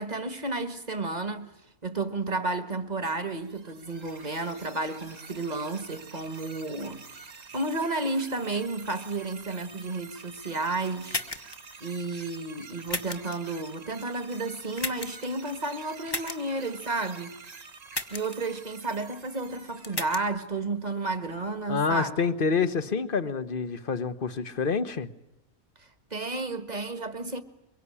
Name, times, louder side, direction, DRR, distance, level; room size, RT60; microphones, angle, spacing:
voice 1, 0.0-1.5 1.8-11.2 11.8-17.4 18.1-22.2 26.1-27.4, right 3 dB, 30° right, 1.6 m, -32 dB
sound 1, 3.3-20.0, right 4 dB, 60° right, 2.5 m, -47 dB
sound 2, 11.1-11.6 12.9-13.4 14.8-15.3 16.1-16.4 17.9-18.4 19.8-20.2, left 2 dB, 15° left, 1.3 m, -33 dB
voice 2, 21.7-25.1, left 5 dB, 40° left, 1.3 m, -27 dB
23.5 x 23.0 x 9.9 m
omnidirectional pair, 1.5 m